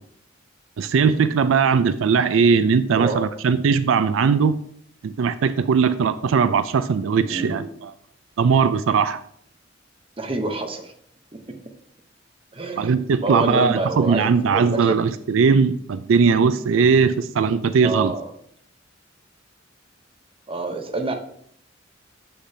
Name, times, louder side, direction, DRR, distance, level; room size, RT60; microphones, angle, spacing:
voice 1, 0.8-4.6 5.0-7.9 8.4-9.2 12.8-18.1, right 5 dB, 90° right, 13 dB, 0.4 m, -19 dB
voice 2, 7.2-7.6 10.2-10.9 12.5-15.0 17.8-18.3 20.5-21.1, right 2 dB, 30° right, 5 dB, 0.8 m, -27 dB
7.7 x 6.7 x 2.7 m, 0.67 s
head